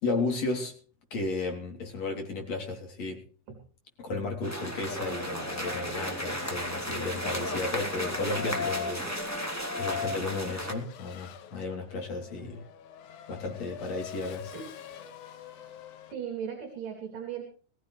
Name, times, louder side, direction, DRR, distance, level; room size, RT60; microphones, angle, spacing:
voice 1, 0.0-0.7 1.1-3.2 4.0-12.6 13.3-14.5, left 3 dB, 50° left, 3 dB, 4.4 m, -34 dB
sound 1, 4.4-10.7, left 1 dB, 5° left, 2.6 m, -33 dB
Race car auto racing / Accelerating revving vroom, 10.5-16.1, left 9 dB, 70° left, 2.5 m, -46 dB
voice 2, 16.1-17.4, right 8 dB, 65° right, 4 dB, 4.6 m, -37 dB
23.0 x 15.0 x 3.3 m, 0.41 s
omnidirectional pair, 4.0 m